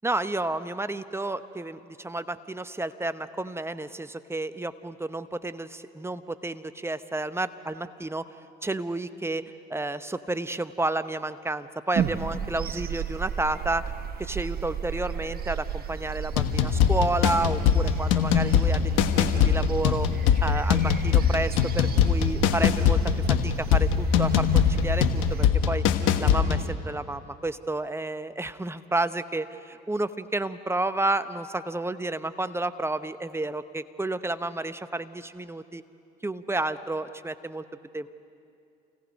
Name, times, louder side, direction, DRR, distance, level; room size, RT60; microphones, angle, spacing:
voice 1, 0.0-8.2 8.6-9.4 9.7-13.8 14.2-20.1 20.4-23.0 23.3-25.8 26.2-35.8 36.2-37.6 37.9-38.1, right 2 dB, 10° right, 12 dB, 0.8 m, -31 dB
sound 1, 11.9-25.5, right 8 dB, 50° right, 1.3 m, -34 dB
sound 2, 16.3-26.7, left 8 dB, 70° left, 1.3 m, -22 dB
28.5 x 17.5 x 5.3 m, 2.5 s
hypercardioid pair, 65°, 21 cm